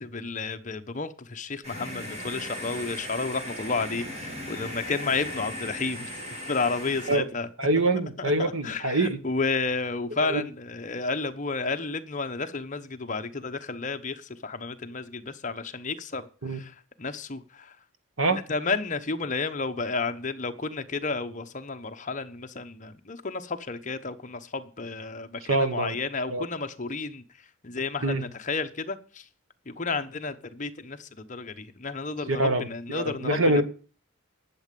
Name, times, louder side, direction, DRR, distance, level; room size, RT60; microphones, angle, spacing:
voice 1, 0.0-6.2 6.5-7.5 8.4-17.7 18.3-27.2 27.6-29.2 29.7-33.6, left 4 dB, 35° left, 1.0 m, -32 dB
sound 1, 1.6-7.2, equal, 30° right, 3.2 m, -37 dB
voice 2, 7.6-9.2 10.2-10.4 16.4-16.6 18.2-18.4 25.5-26.0 26.3-26.4 28.0-28.2 32.3-33.6, right 2 dB, 75° right, 1.6 m, -25 dB
11.5 x 7.5 x 6.8 m
head